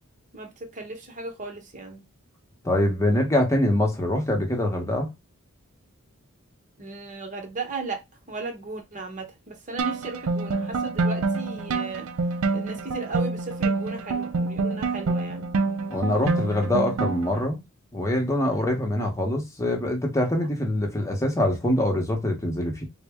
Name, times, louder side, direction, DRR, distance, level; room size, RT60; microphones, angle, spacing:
voice 1, 0.3-2.0 6.8-12.1 12.5-15.5 18.5-18.6, right 3 dB, 35° right, 0.9 m, -36 dB
voice 2, 2.6-5.1 15.9-17.6 17.9-22.8, left 1 dB, 15° left, 0.8 m, -24 dB
sound 1, 9.8-17.4, right 3 dB, 80° right, 0.4 m, -27 dB
4.0 x 2.1 x 3.4 m
head